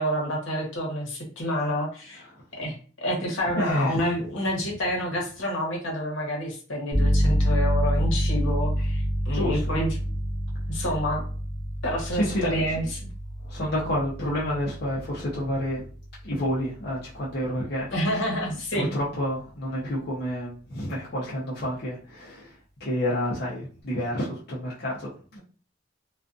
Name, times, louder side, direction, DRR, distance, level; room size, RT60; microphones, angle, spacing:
voice 1, 0.0-2.2 2.6-9.9 10.7-11.2 11.8-13.0 17.9-18.9, equal, 80° left, -1 dB, 1.0 m, -28 dB
voice 2, 3.6-4.0 9.3-9.8 10.7-10.8 12.1-12.9 13.4-15.8 16.2-18.2 18.7-22.5 22.8-25.4, equal, 55° left, -6 dB, 0.7 m, -29 dB
sound 1, 6.9-17.4, equal, ahead, 0.8 m, -27 dB
2.5 x 2.4 x 2.4 m, 0.39 s
head